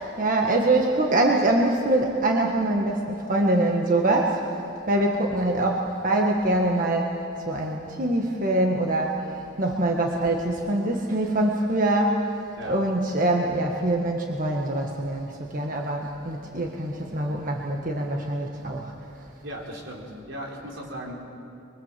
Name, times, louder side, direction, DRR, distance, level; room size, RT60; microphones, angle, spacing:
voice 1, 0.0-4.4 4.9-7.2 7.5-12.2 12.6-18.9, right 1 dB, 45° right, 0 dB, 1.6 m, -24 dB
voice 2, 19.4-21.1, right 1 dB, 80° right, -1 dB, 4.4 m, -37 dB
24.5 x 23.5 x 7.6 m, 2.6 s
head